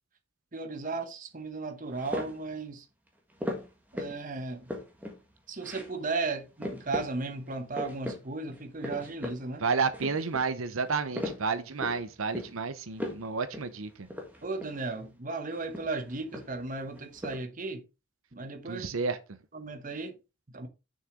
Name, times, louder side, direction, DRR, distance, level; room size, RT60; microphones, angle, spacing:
voice 1, 0.5-2.8 3.9-4.7 5.5-9.6 14.4-17.8 18.3-18.8 19.5-20.2 20.5-20.7, right 3 dB, 40° right, 1.0 m, -35 dB
sound 1, 2.0-2.5 3.4-4.2 4.5-5.2 5.6-5.9 6.2-6.3 6.6-7.1 7.5-8.2 8.5-9.4 9.8-10.5 10.9-12.0 12.3-12.6 12.9-13.3 13.5-13.7 14.1-14.9 15.5-16.7 17.0-17.4, left 1 dB, 10° right, 1.6 m, -37 dB
voice 2, 9.6-14.1 18.7-19.2, right 5 dB, 90° right, 0.8 m, -31 dB
6.5 x 6.3 x 3.8 m
head